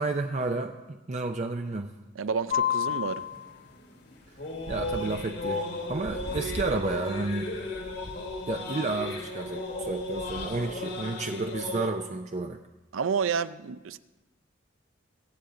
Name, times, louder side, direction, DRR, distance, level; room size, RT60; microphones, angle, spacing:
voice 1, 0.0-1.9 4.7-7.5 8.5-12.6, right 3 dB, 35° right, 4 dB, 0.5 m, -31 dB
voice 2, 2.2-3.3 12.9-14.0, right 6 dB, 80° right, 14 dB, 0.5 m, -30 dB
sound 1, 2.5-11.9, left 4 dB, 55° left, 1.6 m, -33 dB
23.0 x 8.5 x 3.8 m, 1.1 s
head